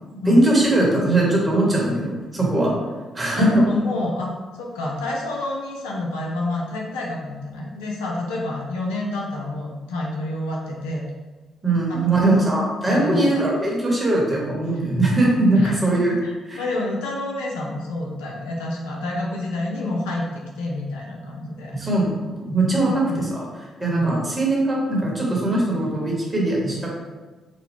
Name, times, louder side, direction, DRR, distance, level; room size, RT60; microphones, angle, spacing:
voice 1, 0.1-2.7 3.1-3.6 11.6-16.1 16.5-16.7 21.7-23.5 23.8-26.9, right 2 dB, 30° right, -2 dB, 1.3 m, -20 dB
voice 2, 3.4-11.0 11.7-12.0 12.3-12.4 12.9-13.5 15.5-21.7 22.7-23.2 23.9-24.2, left 2 dB, 80° left, -2 dB, 0.6 m, -28 dB
3.9 x 2.2 x 3.4 m, 1.3 s
hypercardioid pair, 40°, 0 cm